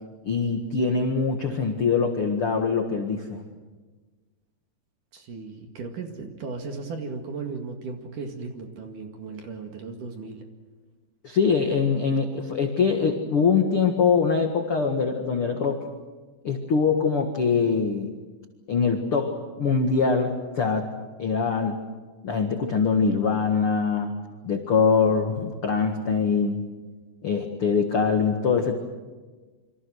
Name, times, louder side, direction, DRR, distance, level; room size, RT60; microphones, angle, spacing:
voice 1, 0.2-3.4 11.2-15.8 16.4-18.1 18.7-20.9 21.2-21.8 22.2-24.1 24.4-26.7 27.2-28.7, left 5 dB, 60° left, 4 dB, 1.5 m, -23 dB
voice 2, 5.1-10.4, right 4 dB, 55° right, 4 dB, 3.1 m, -36 dB
27.5 x 26.0 x 6.4 m, 1.3 s
omnidirectional pair, 5.2 m